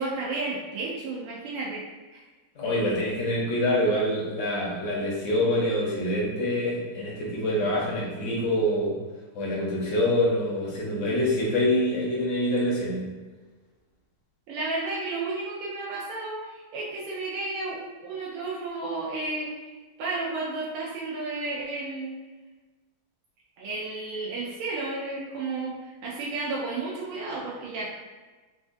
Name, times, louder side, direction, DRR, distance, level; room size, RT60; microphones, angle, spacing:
voice 1, 0.0-1.8 2.1-2.2 14.5-19.7 20.0-22.2 23.6-27.9, right 3 dB, 90° right, -5 dB, 1.5 m, -32 dB
voice 2, 2.6-9.0 9.3-13.0, left 1 dB, 65° left, -5 dB, 0.7 m, -25 dB
4.4 x 2.2 x 2.5 m, 1.3 s
omnidirectional pair, 2.3 m